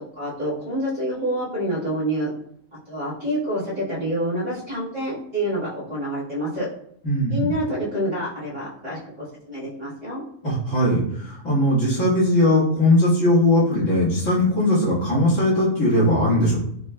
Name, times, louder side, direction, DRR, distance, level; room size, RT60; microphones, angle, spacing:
voice 1, 0.1-2.3 2.9-6.7 7.3-10.2, equal, 30° right, -10 dB, 1.7 m, -27 dB
voice 2, 7.0-7.5 10.4-16.6, left 1 dB, 65° left, -7 dB, 2.0 m, -19 dB
5.0 x 3.1 x 2.2 m, 0.68 s
omnidirectional pair, 1.4 m